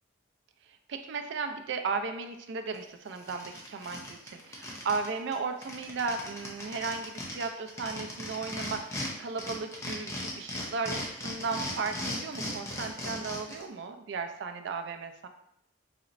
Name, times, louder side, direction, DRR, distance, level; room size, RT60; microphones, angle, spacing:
voice 1, 0.9-15.3, right 4 dB, 65° right, 7 dB, 0.4 m, -35 dB
sound 1, 2.7-2.8 3.2-5.1 5.3-5.4 5.6-9.1 9.4-13.6, left 1 dB, 15° left, 0.7 m, -37 dB
4.1 x 2.9 x 2.5 m, 0.77 s
head